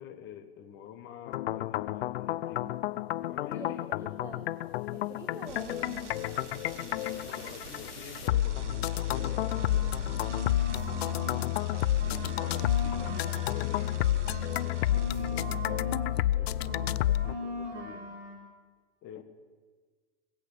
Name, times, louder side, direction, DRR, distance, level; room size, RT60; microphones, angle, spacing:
voice 1, 0.0-2.7 3.3-3.8 6.8-10.1 12.0-14.0 14.3-18.2 19.0-19.2, left 9 dB, 35° left, 9 dB, 1.5 m, -47 dB
sound 1, 1.3-17.3, left 13 dB, 60° left, 0.5 m, -30 dB
voice 2, 3.5-4.5 4.9-6.2 10.8-11.6, right 3 dB, 10° right, 4 dB, 1.1 m, -47 dB
sound 2, 5.5-15.7, right 4 dB, 90° right, 1.4 m, -46 dB
sound 3, 9.1-11.4 11.7-16.1 16.3-18.4, equal, 30° right, 5.3 m, -40 dB
21.0 x 8.1 x 8.3 m, 1.5 s
hypercardioid pair, 120°, 35 cm